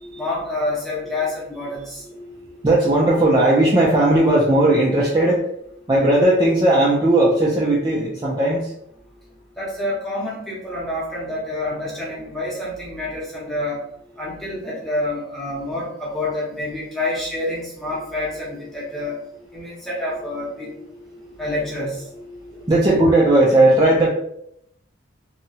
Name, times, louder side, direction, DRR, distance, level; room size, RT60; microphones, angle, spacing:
voice 1, 0.1-2.0 9.6-13.8 14.2-19.2 19.5-20.7 21.4-22.1, left 2 dB, ahead, -6 dB, 0.8 m, -27 dB
voice 2, 2.1-5.5 5.9-8.7 19.7-19.8 21.1-21.4 22.2-24.1, right 1 dB, 20° right, -5 dB, 0.4 m, -17 dB
2.9 x 2.3 x 2.7 m, 0.75 s
head